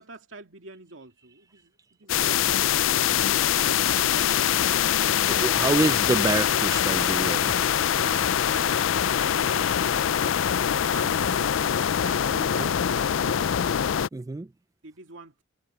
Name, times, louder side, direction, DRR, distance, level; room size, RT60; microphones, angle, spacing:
voice 1, 0.0-1.7 2.0-3.4 3.6-4.5 7.9-11.5 12.0-13.7 14.8-15.4, right 3 dB, 75° right, 2.5 m, -44 dB
sound 1, 2.1-14.1, left 9 dB, 90° left, 0.4 m, -23 dB
voice 2, 5.2-7.6 12.5-12.7 14.1-14.5, right 3 dB, 15° right, 0.3 m, -27 dB
head